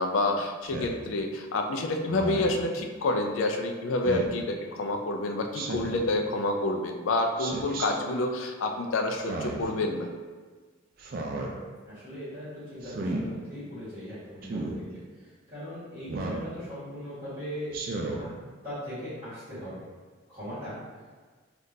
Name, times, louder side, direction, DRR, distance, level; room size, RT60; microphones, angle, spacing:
voice 1, 0.0-10.1, left 2 dB, 85° left, 3 dB, 0.4 m, -28 dB
Speech synthesizer, 0.6-1.0 2.1-2.6 4.0-4.4 5.5-6.1 7.4-7.9 9.2-9.7 11.0-11.5 12.8-13.2 14.4-14.8 16.1-16.5 17.7-18.2, right 2 dB, 50° right, 0.4 m, -33 dB
voice 2, 11.8-17.7 18.2-18.3 18.6-19.8 20.3-20.8, equal, 25° right, -17 dB, 1.5 m, -39 dB
3.6 x 2.4 x 2.7 m, 1.4 s
head